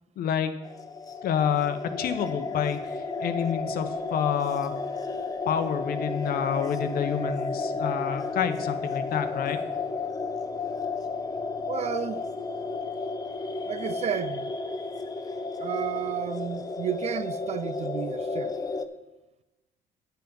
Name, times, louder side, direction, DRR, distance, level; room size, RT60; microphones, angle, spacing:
voice 1, 0.2-0.5 1.2-4.7 5.5-9.6, left 8 dB, 60° left, 0.9 m, -28 dB
sound 1, 0.6-18.9, left 3 dB, 20° left, 0.6 m, -32 dB
voice 2, 11.7-12.3 13.7-14.6 15.6-18.6, right 9 dB, 40° right, 0.4 m, -32 dB
9.3 x 7.0 x 5.3 m
cardioid pair, 110°, 17 cm